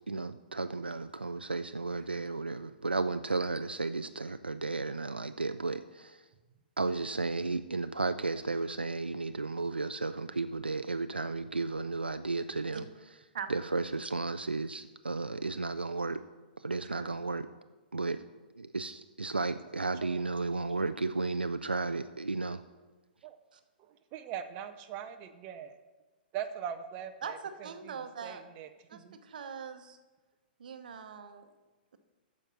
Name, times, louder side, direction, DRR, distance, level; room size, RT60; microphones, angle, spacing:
voice 1, 0.1-6.2 6.8-12.8 13.5-16.2 16.6-17.5 17.9-18.2 18.6-22.6, right 3 dB, 80° right, 10 dB, 0.3 m, -33 dB
voice 2, 23.8-25.8 26.3-27.7 28.2-29.2, right 9 dB, 30° right, 8 dB, 0.5 m, -41 dB
voice 3, 27.6-28.4 28.9-30.0 30.6-31.5, right 7 dB, 55° right, 9 dB, 0.9 m, -42 dB
9.0 x 6.3 x 5.8 m, 1.2 s
figure-of-eight pair, 115°, 5 cm